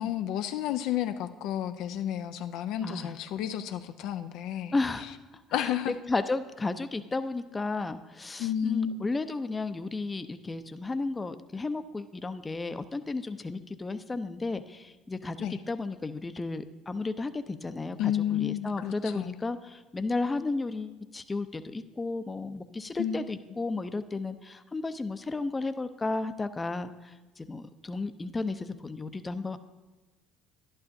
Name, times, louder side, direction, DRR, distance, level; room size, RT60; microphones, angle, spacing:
voice 1, 0.0-4.7 5.5-5.9 8.4-9.1 15.4-15.6 18.0-19.3 23.0-23.2, left 10 dB, 70° left, 8 dB, 0.4 m, -31 dB
voice 2, 2.8-3.1 4.7-5.1 5.6-29.6, left 3 dB, 20° left, 11 dB, 0.5 m, -33 dB
11.0 x 11.0 x 2.6 m, 1.2 s
hypercardioid pair, 70°, 0 cm